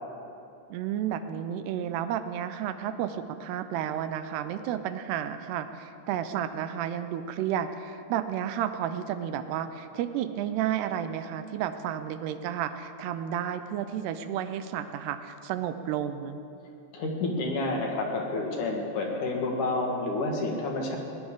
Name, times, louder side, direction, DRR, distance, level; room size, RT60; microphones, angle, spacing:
voice 1, 0.7-16.4, right 10 dB, 85° right, 10 dB, 2.8 m, -32 dB
voice 2, 16.9-21.0, left 2 dB, 60° left, 0 dB, 2.8 m, -29 dB
20.0 x 19.5 x 3.7 m, 2.6 s
omnidirectional pair, 4.7 m